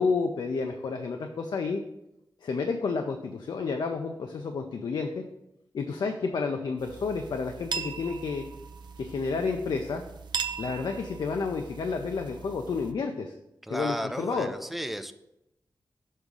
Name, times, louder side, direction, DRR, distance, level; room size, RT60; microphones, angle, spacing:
voice 1, 0.0-1.8 2.4-5.2 5.7-8.4 9.0-10.0 10.6-13.3 13.7-14.5, left 4 dB, 75° left, 5 dB, 0.5 m, -30 dB
sound 1, 6.8-12.9, right 6 dB, 85° right, 0.5 m, -39 dB
voice 2, 13.6-15.1, equal, ahead, 9 dB, 0.4 m, -34 dB
6.4 x 3.6 x 5.2 m, 0.86 s
wide cardioid pair, 110°, 7 cm